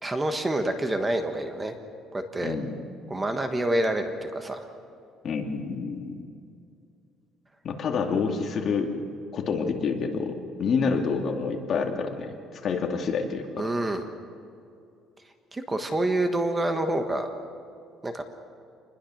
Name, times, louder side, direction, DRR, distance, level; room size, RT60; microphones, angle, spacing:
voice 1, 0.0-1.7 2.1-2.6 3.1-4.7 13.6-14.1 15.5-17.3 18.0-18.2, right 1 dB, 15° right, 6 dB, 1.4 m, -27 dB
voice 2, 2.4-2.8 5.2-6.2 7.6-8.9 9.3-13.5, left 5 dB, 45° left, 2 dB, 2.4 m, -28 dB
27.0 x 21.0 x 6.5 m, 2.4 s
cardioid pair, 140°, 0 cm